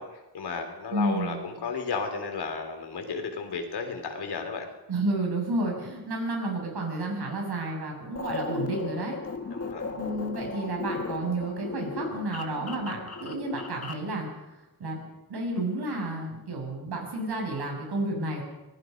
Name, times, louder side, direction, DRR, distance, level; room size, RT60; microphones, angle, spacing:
voice 1, 0.0-4.7 9.5-9.9, left 5 dB, 80° left, 5 dB, 3.8 m, -34 dB
voice 2, 0.9-1.4 4.9-9.2 9.9-14.3 14.8-15.0 15.3-18.4, right 2 dB, 80° right, 1 dB, 7.1 m, -31 dB
sound 1, 8.2-14.1, left 4 dB, 40° left, 1.8 m, -36 dB
26.0 x 20.0 x 5.4 m, 1.0 s
wide cardioid pair, 145°, 39 cm